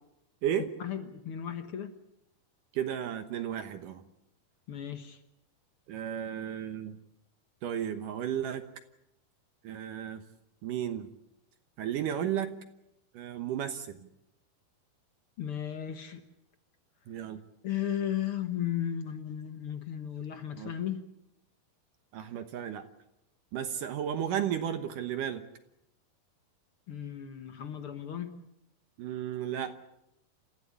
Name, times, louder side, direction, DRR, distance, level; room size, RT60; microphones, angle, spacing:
voice 1, 0.8-1.9 4.7-5.2 15.4-16.2 17.6-21.1 26.9-28.4, left 10 dB, 65° left, 8 dB, 1.4 m, -35 dB
voice 2, 2.7-4.0 5.9-7.0 7.6-8.7 9.6-10.2 10.6-11.1 11.8-12.6 13.1-14.1 17.1-17.4 20.6-20.7 22.1-22.9 23.5-25.4 29.0-29.9, right 9 dB, 65° right, 8 dB, 2.5 m, -33 dB
29.0 x 15.0 x 8.4 m, 0.85 s
omnidirectional pair, 4.4 m